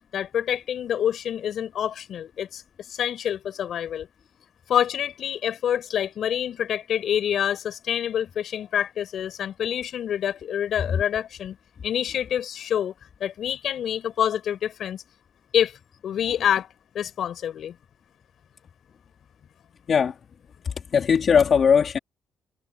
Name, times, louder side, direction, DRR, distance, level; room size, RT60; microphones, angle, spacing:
voice 1, 0.1-2.6 2.9-4.1 4.7-11.6 11.8-12.9 13.2-15.0 15.5-15.8 16.0-16.7 16.9-17.8, left 9 dB, 65° left, 6.8 m, -27 dB
voice 2, 20.6-22.0, left 6 dB, 50° left, 3.8 m, -19 dB
cardioid pair, 90°, 0 cm